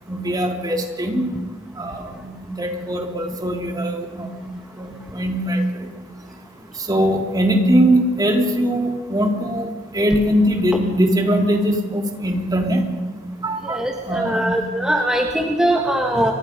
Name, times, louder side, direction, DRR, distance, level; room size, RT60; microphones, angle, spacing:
voice 1, 0.1-1.3 1.7-4.5 4.8-5.9 6.8-12.8 13.4-14.6, equal, 20° right, 2 dB, 3.3 m, -21 dB
voice 2, 13.6-16.3, right 1 dB, 5° right, 0 dB, 1.9 m, -21 dB
29.5 x 25.0 x 5.3 m, 1.4 s
head